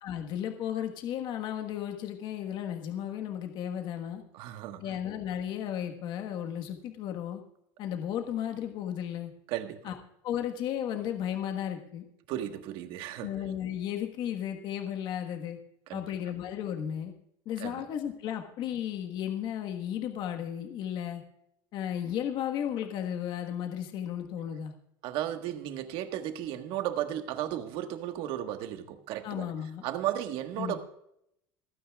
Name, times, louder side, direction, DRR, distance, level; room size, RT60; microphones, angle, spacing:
voice 1, 0.0-4.2 4.8-7.4 7.8-9.3 9.8-9.9 10.2-12.0 13.2-15.6 15.9-17.1 17.4-21.2 21.7-24.7 29.2-29.8 30.6-30.8, left 10 dB, 45° left, 1.4 m, -34 dB
voice 2, 4.3-4.8 9.5-9.9 12.3-13.3 15.9-16.1 17.6-17.8 25.0-29.5 29.8-30.8, right 12 dB, 55° right, 1.4 m, -34 dB
28.0 x 9.4 x 2.4 m
cardioid pair, 165°, 11 cm